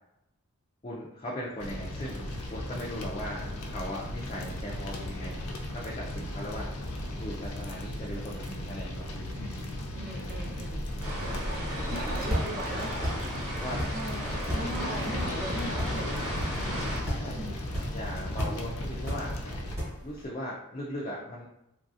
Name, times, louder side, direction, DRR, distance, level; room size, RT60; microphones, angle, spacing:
voice 1, 0.8-9.3 13.6-13.8 17.2-19.4 20.0-21.5, left 1 dB, 25° left, -5 dB, 0.4 m, -39 dB
sound 1, 1.6-19.8, left 1 dB, 85° left, 0.5 m, -36 dB
voice 2, 9.3-11.6 11.9-12.9 13.9-16.2 17.3-17.6, right 1 dB, 45° right, -2 dB, 0.7 m, -39 dB
sound 2, 10.7-20.3, equal, 15° right, 1.1 m, -36 dB
sound 3, 11.0-17.0, equal, 75° right, 0.9 m, -36 dB
3.0 x 2.6 x 2.4 m, 0.84 s
head